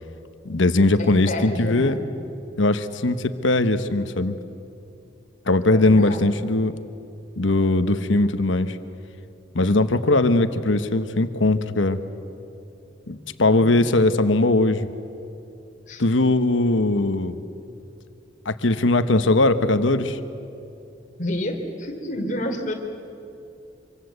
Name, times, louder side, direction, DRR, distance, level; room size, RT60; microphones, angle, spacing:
voice 1, 0.4-2.0 2.6-4.3 5.5-6.7 7.4-8.8 9.5-12.0 13.1-14.9 16.0-17.4 18.4-20.2, left 2 dB, 90° left, 10 dB, 1.1 m, -20 dB
voice 2, 1.0-2.0 5.7-6.2 13.6-13.9 15.9-16.0 21.2-22.7, left 1 dB, 40° left, 3 dB, 3.0 m, -29 dB
26.0 x 24.5 x 8.1 m, 2.7 s
head